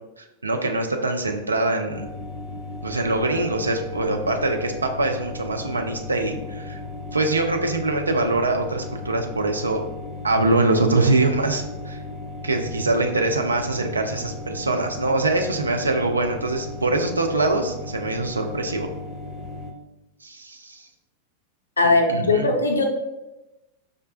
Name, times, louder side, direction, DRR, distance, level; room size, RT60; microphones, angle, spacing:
voice 1, 0.2-2.1 2.8-6.8 7.1-9.8 10.2-12.0 12.4-18.9 20.2-20.9 22.1-22.5, right 2 dB, 80° right, 4 dB, 0.4 m, -23 dB
sound 1, 1.9-19.7, left 2 dB, 20° left, 0.6 m, -36 dB
voice 2, 21.8-22.9, left 3 dB, 75° left, 4 dB, 0.4 m, -19 dB
4.9 x 2.1 x 2.3 m, 0.99 s
figure-of-eight pair, 90°, 0 cm